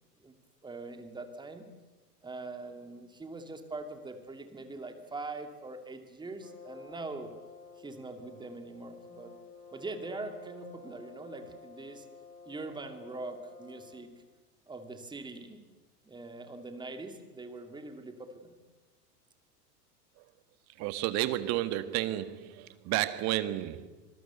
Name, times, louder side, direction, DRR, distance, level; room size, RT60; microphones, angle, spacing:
voice 1, 0.6-1.7 2.2-7.3 7.8-9.3 9.7-12.1 12.5-14.1 14.7-15.6 16.0-18.5, right 3 dB, 10° right, 2.7 m, -42 dB
Brass instrument, 6.4-14.2, left 4 dB, 90° left, 4.6 m, -51 dB
voice 2, 20.8-23.9, right 14 dB, 35° right, 1.7 m, -31 dB
26.0 x 19.5 x 8.2 m
figure-of-eight pair, 95°, 48 cm